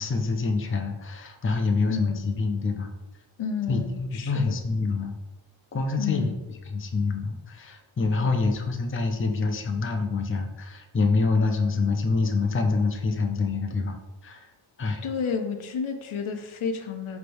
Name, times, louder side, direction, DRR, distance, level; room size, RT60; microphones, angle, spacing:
voice 1, 0.0-2.9 3.7-5.2 5.7-6.3 6.7-14.0 14.2-14.5 14.8-15.0, left 3 dB, 25° left, 3 dB, 0.5 m, -26 dB
voice 2, 1.9-2.2 3.4-4.5 6.0-6.4 8.2-8.5 15.0-17.2, left 6 dB, 75° left, 5 dB, 0.6 m, -31 dB
4.5 x 3.3 x 2.5 m, 1.1 s
wide cardioid pair, 60°, 49 cm